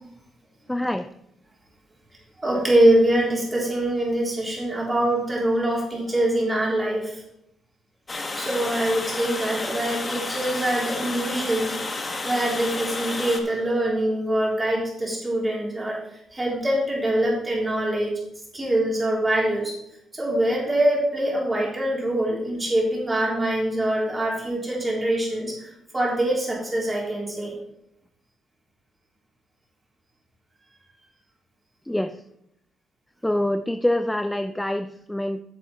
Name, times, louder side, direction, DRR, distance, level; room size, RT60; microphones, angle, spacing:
voice 1, 0.7-1.1 31.9-32.2 33.2-35.4, left 1 dB, 5° left, 10 dB, 0.4 m, -25 dB
voice 2, 2.4-7.2 8.4-11.8 12.2-16.0 16.3-18.2 18.5-19.8 20.1-27.6, right 1 dB, 20° right, -3 dB, 3.6 m, -24 dB
Water, 8.1-13.4, left 3 dB, 30° left, 1.4 m, -31 dB
9.9 x 6.6 x 4.3 m, 0.79 s
cardioid pair, 90°, 0 cm